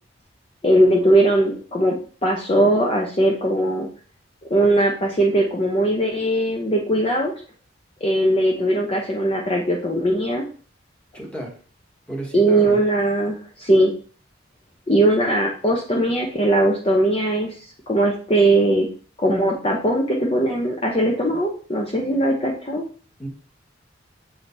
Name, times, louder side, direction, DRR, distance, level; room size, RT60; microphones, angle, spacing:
voice 1, 0.6-2.0 2.2-3.9 4.5-7.3 8.0-10.4 12.3-13.9 14.9-17.5 17.9-18.9 19.2-22.8, right 1 dB, 30° left, -2 dB, 0.7 m, -19 dB
voice 2, 11.1-11.5 12.1-12.8 23.2-23.3, right 1 dB, 5° left, -1 dB, 1.4 m, -32 dB
7.2 x 5.0 x 2.7 m, 0.43 s
head